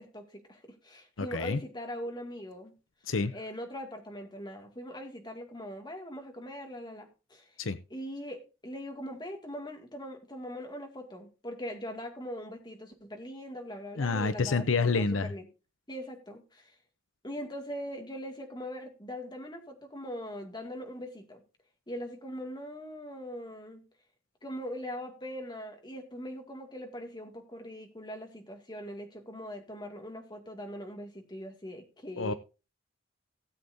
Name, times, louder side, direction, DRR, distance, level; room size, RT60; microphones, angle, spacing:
voice 1, 0.0-2.7 3.3-7.5 7.9-15.5 15.9-16.7 17.2-21.4 21.9-23.8 24.4-32.3, equal, 20° left, 3 dB, 2.1 m, -41 dB
voice 2, 1.2-1.6 3.1-3.3 7.6-7.8 14.0-15.3 32.2-32.3, left 4 dB, 75° left, 12 dB, 0.7 m, -28 dB
17.0 x 7.8 x 2.6 m, 0.31 s
head